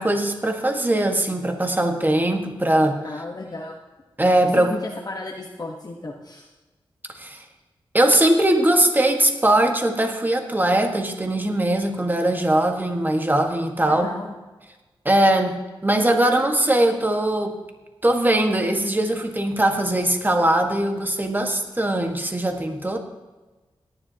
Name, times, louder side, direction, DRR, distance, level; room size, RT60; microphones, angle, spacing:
voice 1, 0.0-3.0 4.2-4.7 7.2-7.4 7.9-14.1 15.0-17.5 18.0-23.0, right 1 dB, 20° right, 4 dB, 1.5 m, -20 dB
voice 2, 3.0-3.8 4.6-6.5 13.8-14.3, left 2 dB, 45° left, -1 dB, 1.2 m, -34 dB
17.5 x 10.0 x 2.9 m, 1.2 s
cardioid pair, 65°, 9 cm